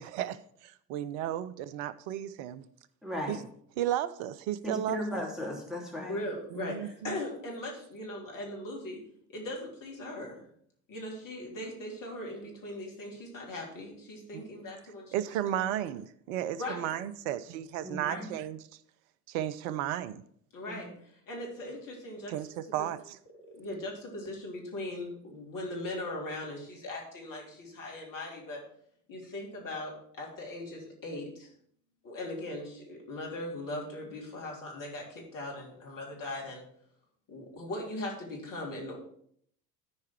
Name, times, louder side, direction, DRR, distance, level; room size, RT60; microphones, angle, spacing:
voice 1, 0.0-2.6 3.3-3.4 3.8-5.0 6.5-7.2 14.3-14.4 15.1-18.6 19.3-20.2 22.3-23.2, right 11 dB, 55° right, 0.7 m, -34 dB
voice 2, 3.0-3.4 4.6-6.2 17.8-18.3 20.7-20.9, left 1 dB, ahead, 3.0 m, -36 dB
voice 3, 6.1-9.0 9.3-10.4 10.9-15.2 15.5-15.6 16.6-16.9 18.1-18.2 20.5-20.9 21.3-22.3 23.5-28.6 29.1-31.5 32.0-36.6 37.3-39.0, left 1 dB, 40° left, 3.5 m, -39 dB
13.5 x 4.7 x 4.6 m
figure-of-eight pair, 65°, 48 cm